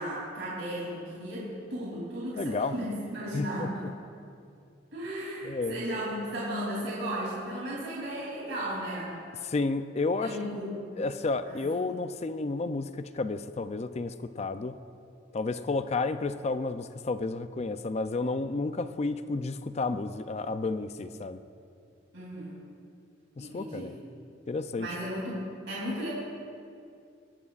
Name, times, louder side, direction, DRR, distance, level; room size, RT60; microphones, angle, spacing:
voice 1, 0.0-3.9 4.9-9.1 10.2-11.0 11.4-11.8 22.1-22.5 23.4-23.9 24.8-26.1, equal, 75° right, -7 dB, 3.1 m, -35 dB
voice 2, 2.4-2.7 3.3-3.7 5.4-5.8 9.5-10.4 11.0-14.8 15.3-21.4 23.4-23.9 24.5-24.9, left 3 dB, 35° left, 11 dB, 0.4 m, -31 dB
22.0 x 11.0 x 2.5 m, 2.5 s
head